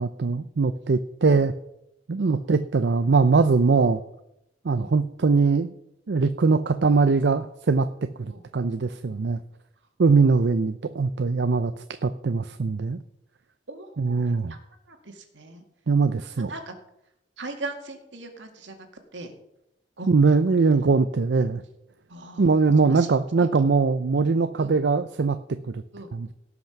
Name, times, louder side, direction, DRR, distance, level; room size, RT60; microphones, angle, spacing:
voice 1, 0.0-1.5 2.1-4.0 4.6-5.7 6.1-7.9 8.2-9.4 10.0-11.7 12.0-13.0 14.0-14.5 15.9-16.5 20.1-21.6 22.4-25.8 26.1-26.3, right 4 dB, 70° right, 11 dB, 0.5 m, -21 dB
voice 2, 13.7-14.2 14.5-14.6 14.9-15.6 16.4-16.7 17.4-18.9 19.1-19.3 20.0-20.4 22.1-22.5 22.9-23.1 23.4-23.5 24.6-24.7 25.9-26.1, right 2 dB, 85° right, 5 dB, 2.1 m, -39 dB
17.5 x 6.0 x 5.9 m, 0.82 s
head